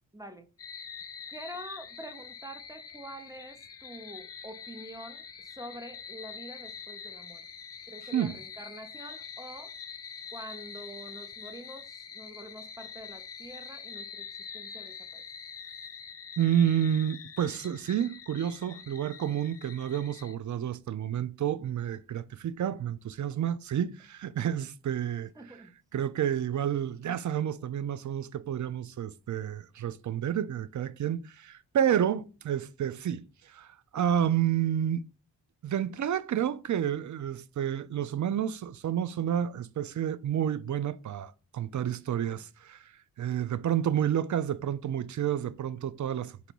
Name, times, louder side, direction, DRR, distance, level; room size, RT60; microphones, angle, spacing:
voice 1, 0.1-0.5 1.3-7.4 7.9-9.7 10.3-14.3 14.5-15.2 25.4-25.7, right 1 dB, 10° right, 0.7 m, -46 dB
sound 1, 0.6-20.3, left 6 dB, 35° left, 0.5 m, -45 dB
voice 2, 16.4-25.6 25.9-35.0 35.6-46.5, right 10 dB, 45° right, 0.5 m, -30 dB
3.9 x 2.8 x 4.5 m
cardioid pair, 45°, 41 cm